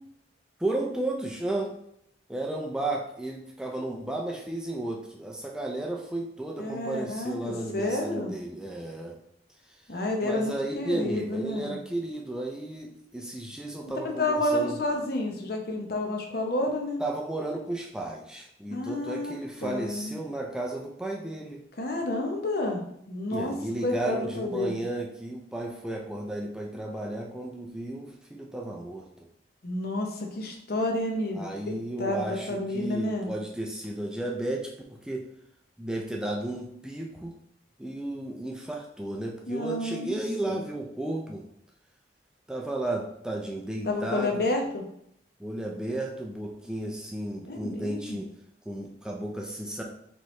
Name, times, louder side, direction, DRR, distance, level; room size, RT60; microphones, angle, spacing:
voice 1, 0.6-1.8 2.3-9.2 9.7-10.0 10.2-14.8 17.0-21.6 23.3-29.3 31.3-35.3 35.8-37.3 37.8-41.5 42.5-44.4 45.4-48.3 48.6-49.8, right 1 dB, 5° right, 0 dB, 0.4 m, -33 dB
voice 2, 6.6-8.3 9.9-11.8 14.0-17.0 18.7-19.4 19.6-20.1 21.8-23.5 23.8-24.8 29.6-33.3 39.5-40.2 40.5-40.6 43.8-44.8 47.4-48.2, left 2 dB, 55° left, 2 dB, 0.8 m, -30 dB
4.4 x 3.1 x 3.1 m, 0.73 s
head